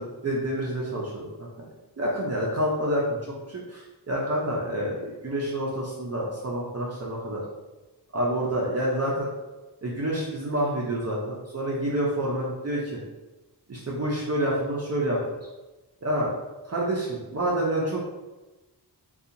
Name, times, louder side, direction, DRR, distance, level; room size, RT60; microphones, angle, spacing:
voice 1, 0.0-1.5 2.0-3.2 3.5-7.4 8.1-9.3 9.8-13.0 13.7-15.2 16.0-16.3 16.7-18.0, right 1 dB, 40° right, -4 dB, 0.5 m, -28 dB
2.7 x 2.3 x 2.5 m, 1.1 s
wide cardioid pair, 105°, 41 cm